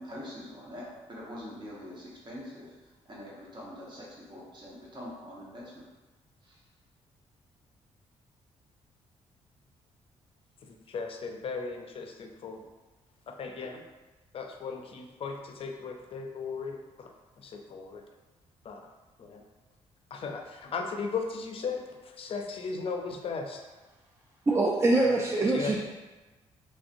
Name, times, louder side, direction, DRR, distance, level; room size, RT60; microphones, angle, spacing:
voice 1, 0.0-2.7 3.0-5.9 6.4-6.6, left 1 dB, 40° right, -5 dB, 1.2 m, -44 dB
voice 2, 10.6-12.7 13.3-13.8 14.3-17.1 17.4-18.0 18.6-18.9 19.2-19.4 20.1-23.6 24.9-25.1 25.5-25.7, left 5 dB, 50° left, 3 dB, 0.4 m, -37 dB
voice 3, 24.5-25.8, right 2 dB, 20° right, -2 dB, 0.4 m, -24 dB
3.1 x 2.7 x 2.6 m, 1.2 s
cardioid pair, 75°, 12 cm